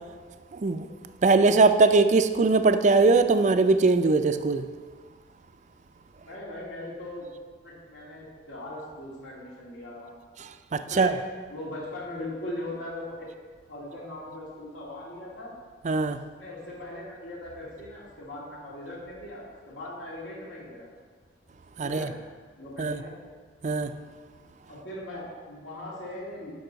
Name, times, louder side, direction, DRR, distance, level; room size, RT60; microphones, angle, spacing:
voice 1, 0.5-0.9 1.2-4.7 10.7-11.1 15.8-16.2 21.8-22.1 22.8-23.0 23.6-23.9, right 3 dB, 40° right, 10 dB, 0.4 m, -21 dB
voice 2, 6.3-7.3 7.6-10.1 10.9-11.2 11.5-13.3 13.7-15.5 16.4-20.9 21.8-22.1 22.6-23.2 24.7-26.5, left 1 dB, 75° left, -6 dB, 2.4 m, -39 dB
10.0 x 6.0 x 3.9 m, 1.6 s
head